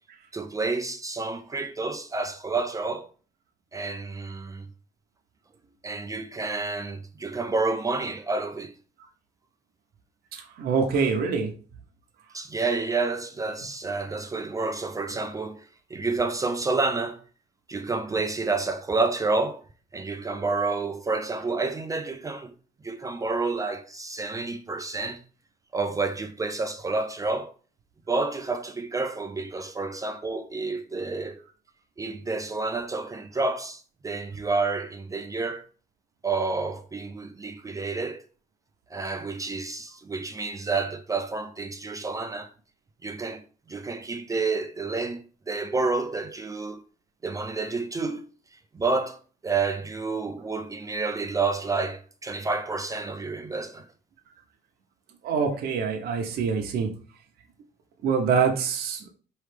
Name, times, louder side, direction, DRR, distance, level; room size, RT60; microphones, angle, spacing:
voice 1, 0.3-3.1 3.7-4.7 5.8-8.7 12.3-15.6 15.9-17.2 17.7-19.6 19.9-22.5 22.8-25.2 25.7-27.5 28.1-31.4 32.0-35.6 36.2-38.2 38.9-42.5 43.0-43.4 43.7-46.8 47.2-48.2 48.7-53.9, right 3 dB, 20° right, 0.4 m, -29 dB
voice 2, 10.3-11.5 55.2-56.9 58.0-59.0, right 5 dB, 65° right, 0.9 m, -25 dB
4.7 x 3.2 x 3.3 m
cardioid pair, 110°, 17 cm